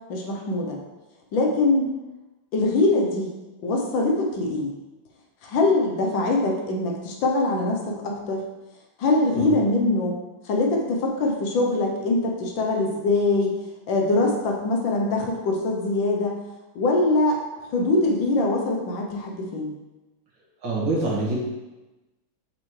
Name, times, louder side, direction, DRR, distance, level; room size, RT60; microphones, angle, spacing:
voice 1, 0.1-0.8 1.3-1.9 2.5-3.3 3.6-4.7 5.4-8.4 9.0-10.2 10.4-13.5 13.9-16.4 16.7-17.4 17.7-19.7, left 2 dB, 70° left, 0 dB, 1.6 m, -23 dB
voice 2, 20.6-21.4, right 2 dB, 65° right, -5 dB, 2.3 m, -25 dB
6.3 x 5.7 x 3.2 m, 1.1 s
omnidirectional pair, 2.3 m